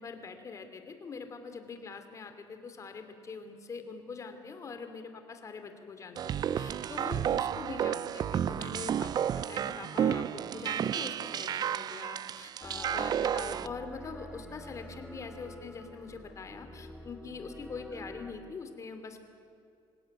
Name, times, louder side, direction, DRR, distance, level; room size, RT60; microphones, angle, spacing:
voice 1, 0.0-19.2, left 5 dB, 30° left, 8 dB, 2.7 m, -43 dB
sound 1, 6.2-13.7, right 9 dB, 45° right, 0.5 m, -32 dB
sound 2, 12.6-18.3, equal, ahead, 2.0 m, -47 dB
26.5 x 17.0 x 9.3 m, 2.5 s
cardioid pair, 135°, 10 cm